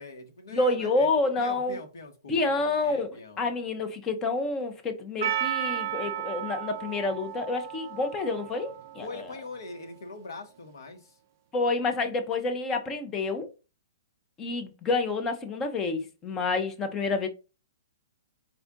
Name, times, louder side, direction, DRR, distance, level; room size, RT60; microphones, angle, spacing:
voice 1, 0.0-1.1 1.4-3.5 9.0-11.1, left 3 dB, 80° left, 1.2 m, -42 dB
voice 2, 0.5-1.8 2.3-3.1 3.4-9.2 11.5-13.5 14.4-17.3, left 3 dB, 15° left, 0.5 m, -28 dB
Percussion, 5.2-9.8, right 11 dB, 40° right, 0.4 m, -34 dB
4.3 x 2.3 x 3.8 m
hypercardioid pair, 170°, 2 cm